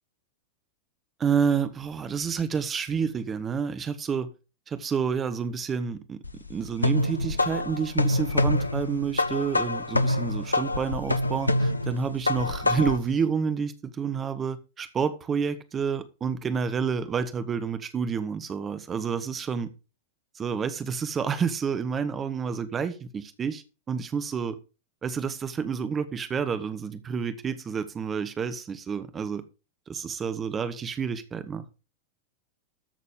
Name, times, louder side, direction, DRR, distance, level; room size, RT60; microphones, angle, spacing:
voice 1, 1.2-4.3 4.7-6.2 6.5-19.7 20.3-24.6 25.0-29.4 29.9-31.7, right 6 dB, 20° right, 1.1 m, -29 dB
sound 1, 6.2-13.1, left 2 dB, 80° left, 0.8 m, -26 dB
13.5 x 6.6 x 5.1 m
figure-of-eight pair, 90°, 0 cm